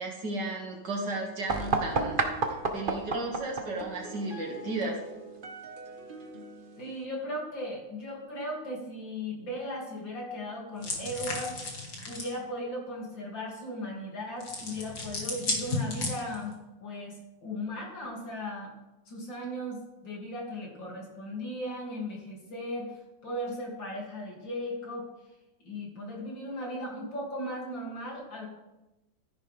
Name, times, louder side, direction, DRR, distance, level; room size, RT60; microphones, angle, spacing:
voice 1, 0.0-5.0, right 2 dB, 65° right, -1 dB, 2.9 m, -34 dB
sound 1, 1.5-7.0, right 3 dB, 35° right, 1.0 m, -33 dB
voice 2, 6.8-11.6 12.1-18.7 19.1-25.1 25.6-28.5, left 1 dB, 80° left, -2 dB, 3.6 m, -37 dB
sound 2, 10.8-12.4 14.4-16.5, left 3 dB, 60° left, 2.6 m, -34 dB
13.5 x 10.5 x 3.6 m, 0.98 s
omnidirectional pair, 2.0 m